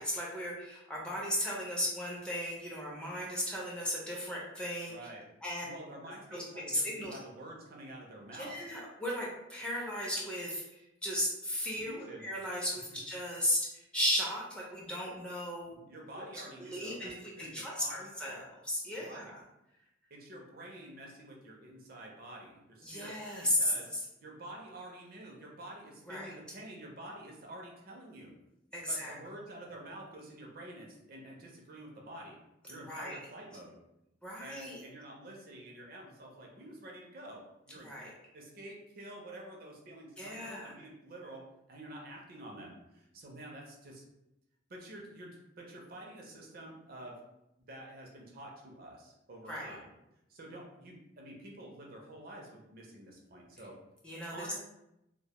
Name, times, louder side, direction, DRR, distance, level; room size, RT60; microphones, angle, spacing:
voice 1, 0.0-5.0 5.4-5.7 6.3-6.4 6.7-7.1 8.4-15.7 16.2-16.3 16.6-19.4 22.8-23.7 26.1-26.3 28.7-29.1 32.9-33.2 34.2-34.8 37.8-38.1 40.2-40.7 49.5-49.7 54.0-54.5, equal, 5° left, -5 dB, 0.4 m, -35 dB
voice 2, 4.9-5.3 5.6-8.6 11.9-12.3 15.7-18.2 18.9-19.3 20.1-23.9 24.2-28.3 28.9-32.4 32.7-33.8 34.4-37.9 38.3-44.0 44.7-47.2 47.6-49.9 50.3-53.8 54.3-54.6, right 1 dB, 50° right, 0 dB, 0.5 m, -48 dB
2.1 x 2.1 x 2.8 m, 0.88 s
head